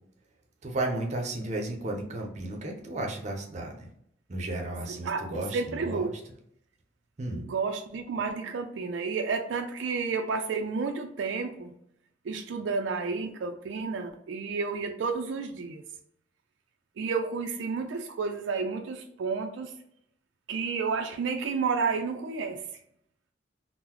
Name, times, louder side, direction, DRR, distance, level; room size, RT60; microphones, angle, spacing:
voice 1, 0.6-3.9 4.3-6.1 7.2-7.4, right 2 dB, 40° right, 1 dB, 0.6 m, -33 dB
voice 2, 4.9-6.1 7.3-11.7 12.2-15.8 17.0-19.7 20.5-22.6, right 4 dB, 85° right, 5 dB, 0.4 m, -31 dB
3.7 x 2.0 x 2.9 m, 0.74 s
head